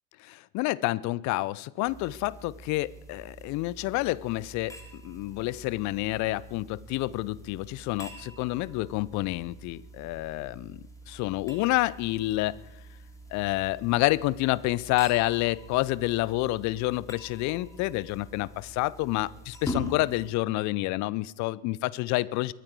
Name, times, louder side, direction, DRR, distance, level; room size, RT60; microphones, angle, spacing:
voice 1, 0.2-10.8 11.1-12.6 13.3-22.5, left 19 dB, 40° left, 21 dB, 0.5 m, -28 dB
sound 1, 1.8-20.3, equal, 5° left, 2.7 m, -44 dB
22.5 x 9.2 x 4.6 m, 0.86 s
figure-of-eight pair, 70°, 47 cm